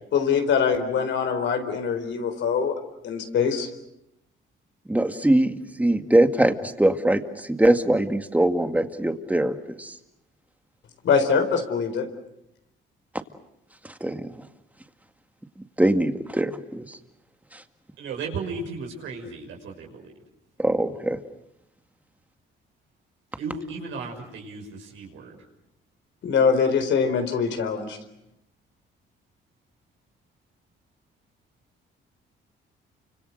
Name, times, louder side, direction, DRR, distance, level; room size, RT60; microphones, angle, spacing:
voice 1, 0.1-2.7 3.0-3.7 11.0-12.1 26.2-28.0, left 6 dB, 70° left, 7 dB, 4.2 m, -23 dB
voice 2, 4.9-10.0 14.0-14.3 15.8-17.0 17.5-17.6 20.6-21.2, right 1 dB, 5° right, 7 dB, 2.1 m, -22 dB
voice 3, 18.0-20.1 23.4-25.4, right 4 dB, 80° right, 0 dB, 6.1 m, -35 dB
29.5 x 26.0 x 6.5 m, 0.83 s
cardioid pair, 90°, 20 cm